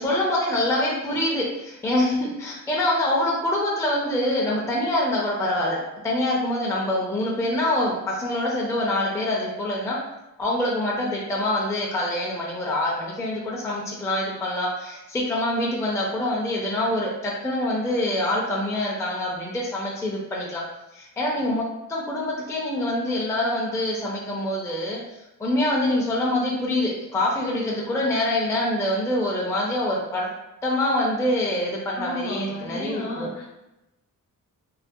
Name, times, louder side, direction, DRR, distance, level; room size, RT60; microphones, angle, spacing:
voice 1, 0.0-10.0 10.4-20.6 20.9-21.6 21.9-25.0 25.4-30.3 30.6-33.3, left 1 dB, 10° left, -4 dB, 0.4 m, -25 dB
voice 2, 32.0-33.5, equal, 60° left, -3 dB, 0.8 m, -32 dB
2.4 x 2.1 x 2.6 m, 0.96 s
wide cardioid pair, 145°, 34 cm